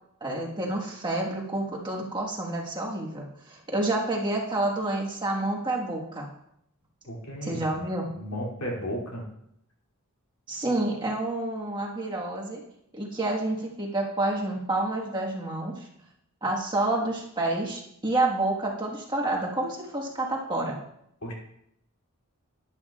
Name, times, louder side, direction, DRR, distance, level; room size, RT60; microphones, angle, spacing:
voice 1, 0.2-6.3 7.4-8.1 10.5-12.6 12.9-15.9 16.4-20.8, right 2 dB, 20° right, -2 dB, 1.4 m, -29 dB
voice 2, 7.0-7.6 8.1-9.2 21.2-21.3, equal, 85° left, -2 dB, 2.6 m, -34 dB
11.0 x 10.0 x 2.4 m, 0.76 s
head